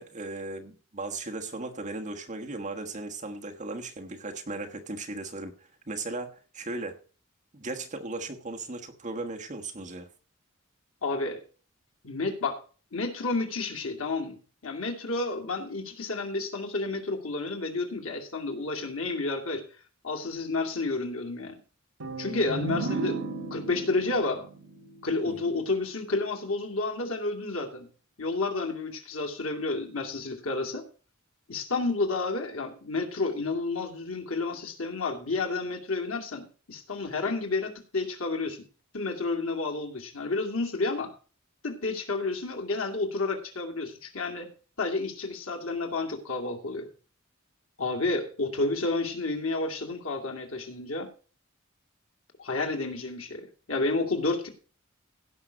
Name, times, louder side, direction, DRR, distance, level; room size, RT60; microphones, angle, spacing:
voice 1, 0.0-5.5 5.9-7.0 7.5-10.1 25.2-25.5, right 2 dB, 35° right, 1.3 m, -37 dB
voice 2, 11.0-11.4 12.0-12.6 12.9-19.6 20.0-21.6 22.2-23.2 23.5-24.5 25.0-27.9 28.2-30.9 31.5-38.6 38.9-41.1 41.6-44.5 44.8-46.9 47.8-51.1 52.4-54.5, left 3 dB, 85° left, 2.4 m, -30 dB
sound 1, 22.0-25.7, right 3 dB, 80° right, 1.5 m, -35 dB
16.5 x 5.7 x 5.1 m
head